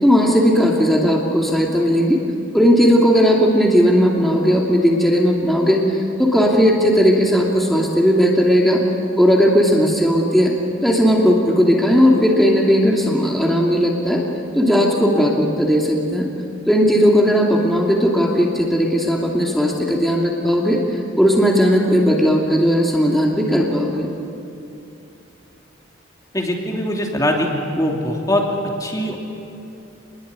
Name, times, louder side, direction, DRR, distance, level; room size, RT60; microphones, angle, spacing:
voice 1, 0.0-2.2 2.5-8.8 9.2-10.5 10.8-14.2 14.5-16.3 16.7-24.1, equal, ahead, -2 dB, 2.7 m, -16 dB
voice 2, 26.3-27.5 27.7-28.4 28.8-29.2, left 1 dB, 20° left, 0 dB, 2.8 m, -21 dB
28.5 x 21.5 x 9.7 m, 2.8 s
head